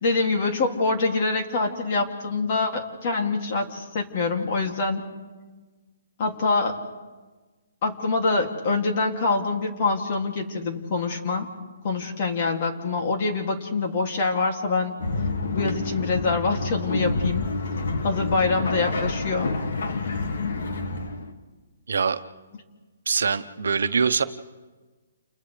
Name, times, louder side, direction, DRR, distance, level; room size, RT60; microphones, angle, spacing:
voice 1, 0.0-5.0 6.2-6.8 7.8-11.5 11.8-14.9 15.5-17.5 18.0-19.5, left 3 dB, 35° left, 3 dB, 2.5 m, -25 dB
sound 1, 15.0-21.3, left 3 dB, 65° left, 2.1 m, -28 dB
voice 2, 21.9-22.2 23.1-24.2, right 5 dB, 85° right, 10 dB, 1.0 m, -23 dB
30.0 x 29.5 x 3.4 m, 1.3 s
hypercardioid pair, 170°, 0 cm